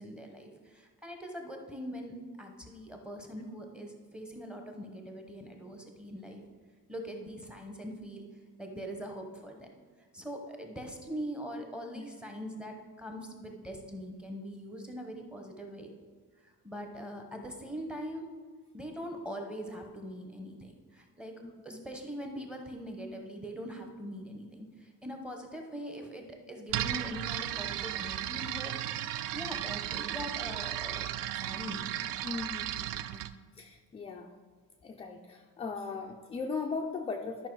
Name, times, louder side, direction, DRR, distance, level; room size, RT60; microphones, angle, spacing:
voice 1, 0.0-6.4 6.9-8.3 8.6-9.7 10.1-15.9 16.4-18.3 18.7-21.4 21.6-28.7 29.3-31.8, equal, 5° right, 3 dB, 0.8 m, -42 dB
voice 2, 21.4-21.9 32.2-34.3 34.8-37.5, left 4 dB, 20° left, 2 dB, 0.3 m, -39 dB
sound 1, 26.7-33.3, right 12 dB, 75° right, 0.5 m, -35 dB
11.5 x 5.6 x 4.5 m, 1.5 s
cardioid pair, 175°, 32 cm